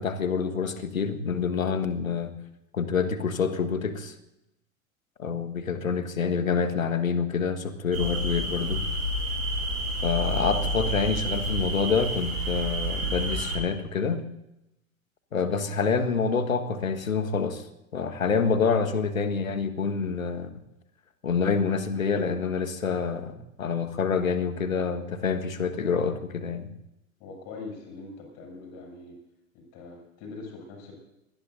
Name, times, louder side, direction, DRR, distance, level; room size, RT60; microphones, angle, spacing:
voice 1, 0.0-2.3 2.7-4.1 5.2-8.8 10.0-14.2 15.3-17.7 17.9-20.5 21.2-26.7, left 5 dB, 75° left, 10 dB, 1.7 m, -27 dB
sound 1, 7.9-13.6, right 1 dB, 75° right, 4.3 m, -29 dB
voice 2, 27.2-29.2 29.5-30.9, left 3 dB, 40° left, 1 dB, 7.3 m, -42 dB
24.5 x 19.5 x 2.7 m, 0.87 s
figure-of-eight pair, 90°, 41 cm